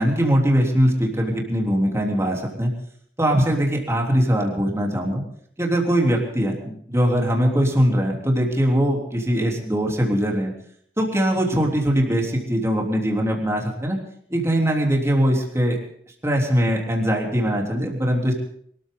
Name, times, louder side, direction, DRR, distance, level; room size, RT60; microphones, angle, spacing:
voice 1, 0.0-2.7 3.2-5.2 5.6-10.5 11.0-14.0 14.3-15.8 16.2-18.3, equal, 15° right, 0 dB, 3.5 m, -21 dB
24.0 x 14.0 x 3.9 m, 0.63 s
head